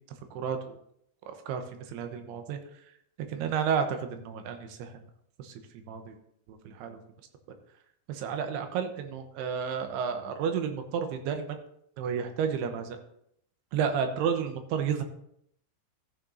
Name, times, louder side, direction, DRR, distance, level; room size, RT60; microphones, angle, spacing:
voice 1, 0.3-0.8 1.3-2.8 3.3-5.0 5.4-6.2 6.5-7.0 8.1-11.6 12.0-13.0 13.7-15.0, right 7 dB, 80° right, 6 dB, 2.5 m, -32 dB
14.5 x 8.8 x 2.7 m, 0.72 s
omnidirectional pair, 5.5 m